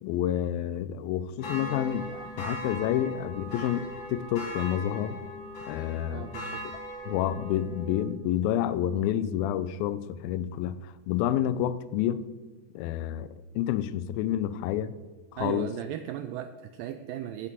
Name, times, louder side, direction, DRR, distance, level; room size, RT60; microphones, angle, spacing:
voice 1, 0.0-5.2 5.7-6.3 7.1-12.2 12.7-14.9 15.3-15.7, left 11 dB, 80° left, 2.2 m, -29 dB
sound 1, 1.4-8.1, equal, 35° left, 3.3 m, -39 dB
voice 2, 6.1-6.6 15.4-17.5, right 11 dB, 85° right, 2.0 m, -36 dB
8.3 x 7.9 x 7.3 m
omnidirectional pair, 4.4 m